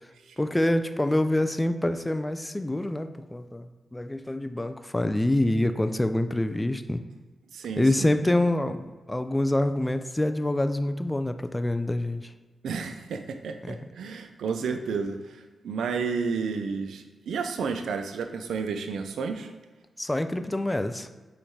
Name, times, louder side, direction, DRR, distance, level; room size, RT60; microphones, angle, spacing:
voice 1, 0.4-7.0 7.8-12.3 13.6-13.8 20.0-21.1, left 1 dB, 15° left, 9 dB, 0.3 m, -26 dB
voice 2, 7.5-8.2 12.6-19.5, right 5 dB, 85° right, 6 dB, 0.4 m, -31 dB
5.6 x 3.2 x 2.7 m, 1.3 s
cardioid pair, 50°, 0 cm